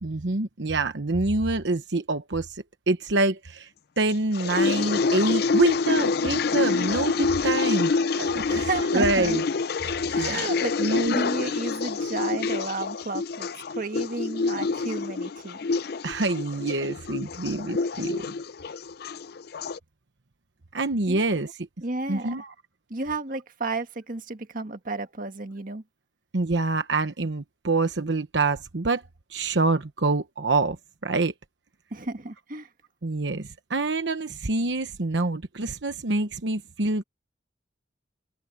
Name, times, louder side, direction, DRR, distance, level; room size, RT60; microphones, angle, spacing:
voice 1, 0.0-3.7 4.0-9.4 9.8-10.5 10.8-11.2 16.0-18.3 20.7-21.5 22.1-22.5 26.3-29.0 29.3-30.8 31.0-31.3 33.0-37.0, right 3 dB, 75° right, 1.1 m, -26 dB
sound 1, 4.1-19.8, left 4 dB, 55° left, 0.4 m, -27 dB
voice 2, 8.5-9.4 10.1-13.5 13.8-15.6 21.1-21.2 21.8-22.4 22.9-25.8 31.9-32.7, right 2 dB, 50° right, 1.8 m, -32 dB
head